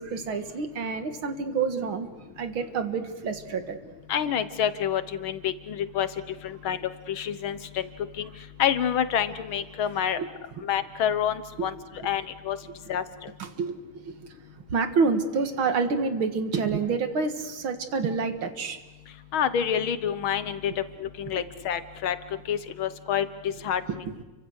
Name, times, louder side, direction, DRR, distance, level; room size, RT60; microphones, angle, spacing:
voice 1, 0.0-2.1 2.4-3.8 10.2-10.3 13.4-13.8 14.1-14.2 14.7-18.8, right 5 dB, 75° right, 7 dB, 2.5 m, -27 dB
voice 2, 4.1-6.1 6.4-6.8 7.1-7.9 8.2-8.3 8.6-10.2 10.7-11.7 12.0-12.6 12.9-13.0 19.3-20.7 21.0-22.2 22.5-23.3 23.6-24.0, left 9 dB, 75° left, 12 dB, 2.0 m, -27 dB
29.5 x 24.5 x 6.5 m, 1.1 s
omnidirectional pair, 2.2 m